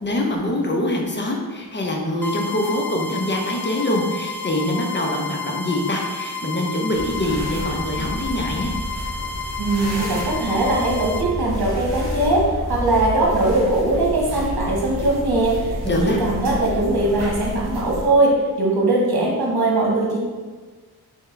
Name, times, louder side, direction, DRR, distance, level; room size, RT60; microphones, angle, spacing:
voice 1, 0.0-8.7 15.8-16.2, left 1 dB, 25° left, 0 dB, 0.8 m, -24 dB
sound 1, 2.2-11.2, left 3 dB, 5° left, 0.3 m, -31 dB
sound 2, 6.9-18.1, left 1 dB, 40° right, 1.0 m, -30 dB
voice 2, 9.6-20.2, right 2 dB, 65° right, -4 dB, 1.3 m, -20 dB
3.5 x 3.4 x 3.3 m, 1.4 s
cardioid pair, 70°, 40 cm